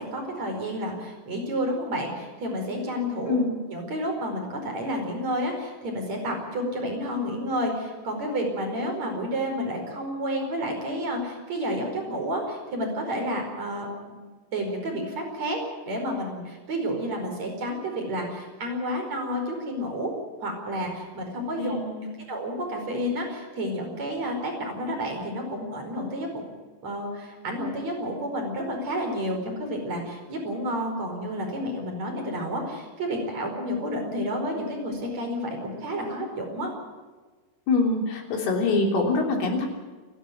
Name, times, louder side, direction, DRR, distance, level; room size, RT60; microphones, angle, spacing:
voice 1, 0.0-3.4 3.7-14.2 14.5-20.1 20.4-21.8 22.3-26.5 26.8-36.7, equal, 45° right, 2 dB, 6.0 m, -30 dB
voice 2, 21.6-22.2 37.7-39.7, left 3 dB, 75° left, 2 dB, 5.2 m, -24 dB
29.0 x 11.5 x 9.4 m, 1.3 s
omnidirectional pair, 4.5 m